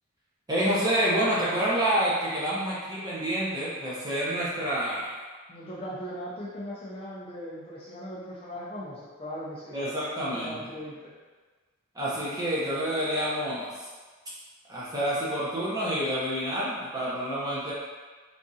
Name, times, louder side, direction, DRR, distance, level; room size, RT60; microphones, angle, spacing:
voice 1, 0.5-5.2 9.7-10.7 11.9-13.9 14.7-17.7, right 1 dB, 20° right, -8 dB, 0.8 m, -28 dB
voice 2, 5.5-11.1, equal, 25° left, -7 dB, 0.5 m, -39 dB
3.5 x 2.5 x 2.7 m, 1.4 s
head